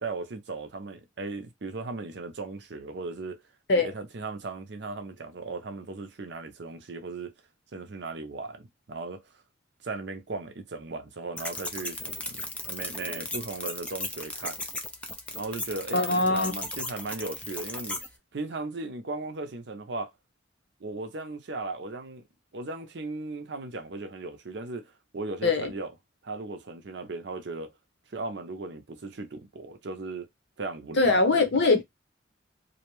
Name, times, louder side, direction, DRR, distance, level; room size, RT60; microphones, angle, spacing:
voice 1, 0.0-3.4 3.8-7.3 7.7-9.2 9.8-14.6 15.4-18.0 18.3-20.1 20.8-22.2 22.5-25.9 26.2-27.7 28.1-30.3 30.6-31.2, right 3 dB, 60° right, 0.6 m, -37 dB
sound 1, 11.4-18.1, left 1 dB, 5° left, 0.3 m, -36 dB
voice 2, 15.9-16.5 25.4-25.7 31.0-31.8, left 3 dB, 60° left, 0.7 m, -22 dB
2.6 x 2.1 x 3.0 m
head